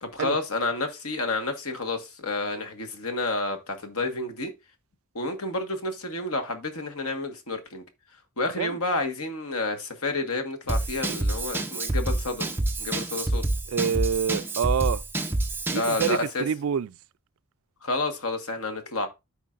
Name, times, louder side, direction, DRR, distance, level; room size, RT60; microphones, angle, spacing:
voice 1, 0.0-4.5 5.1-7.8 8.4-12.4 12.8-13.4 15.7-16.4 17.8-19.1, left 2 dB, 80° left, 1.5 m, -30 dB
Drum kit / Drum, 10.7-16.3, right 2 dB, 10° right, 0.6 m, -28 dB
voice 2, 13.7-15.0 15.7-16.9, right 7 dB, 70° right, 0.3 m, -26 dB
13.0 x 4.5 x 2.5 m
head